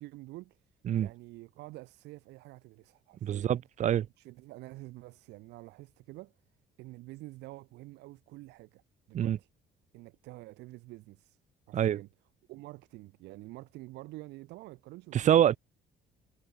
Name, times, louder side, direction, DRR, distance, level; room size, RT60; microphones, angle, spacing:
voice 1, 0.0-3.5 4.2-6.3 6.8-8.8 9.1-9.5 9.9-11.4 11.7-12.1 12.5-15.4, right 20 dB, 90° right, 4.5 m, -48 dB
voice 2, 3.2-4.1 9.1-9.4 11.7-12.0 15.1-15.6, right 10 dB, 45° right, 0.6 m, -25 dB
cardioid pair, 110°, 17 cm